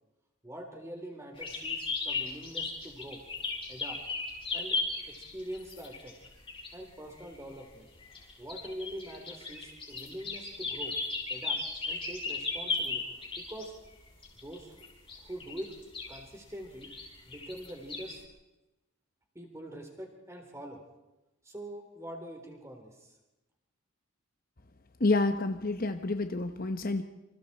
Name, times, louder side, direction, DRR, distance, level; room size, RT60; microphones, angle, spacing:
voice 1, 0.4-3.2 3.7-4.0 4.5-4.8 5.1-6.1 6.7-7.9 8.4-11.0 11.3-11.6 11.9-13.0 13.4-13.8 14.4-14.8 15.2-15.7 16.1-16.9 17.3-18.2 19.3-20.8 21.4-23.2, right 1 dB, 15° right, 3 dB, 3.7 m, -44 dB
sound 1, 1.4-6.7 7.2-7.5 8.0-13.6 14.2-16.2 16.8-18.2, left 3 dB, 25° left, 5.6 m, -36 dB
voice 2, 25.0-27.0, left 2 dB, 40° left, 8 dB, 0.9 m, -28 dB
28.0 x 26.0 x 4.4 m, 1.0 s
head